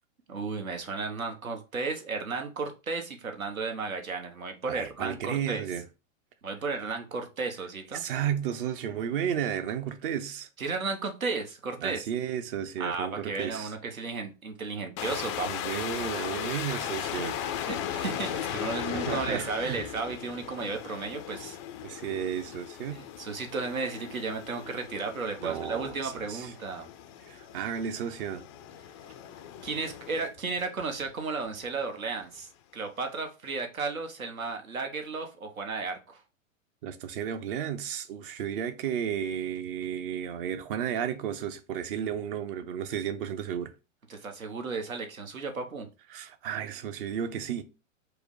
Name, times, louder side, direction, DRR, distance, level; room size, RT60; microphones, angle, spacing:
voice 1, 0.3-5.6 6.4-8.0 10.6-12.0 12.8-15.7 17.6-21.6 22.9-26.9 29.6-36.2 44.1-45.9, right 4 dB, 85° right, 1.1 m, -34 dB
voice 2, 4.6-5.8 7.9-10.5 11.8-13.7 15.5-17.4 18.9-19.9 21.4-21.5 21.8-23.0 25.4-26.5 27.3-28.4 36.8-43.7 46.1-47.6, right 9 dB, 40° right, 0.7 m, -33 dB
sound 1, 15.0-31.1 31.5-31.8 32.4-32.5, left 10 dB, 25° left, 0.3 m, -37 dB
4.9 x 2.1 x 4.6 m
hypercardioid pair, 110°, 40 cm